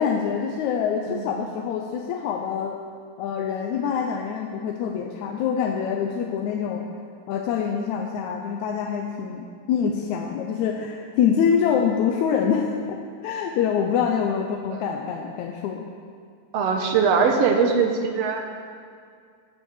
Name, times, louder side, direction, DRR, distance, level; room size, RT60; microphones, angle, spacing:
voice 1, 0.0-2.8 3.2-6.8 7.3-12.7 13.2-15.9, left 7 dB, 75° left, 2 dB, 2.0 m, -25 dB
voice 2, 16.5-18.4, right 5 dB, 65° right, 4 dB, 1.7 m, -21 dB
13.5 x 8.2 x 7.4 m, 2.2 s
omnidirectional pair, 3.7 m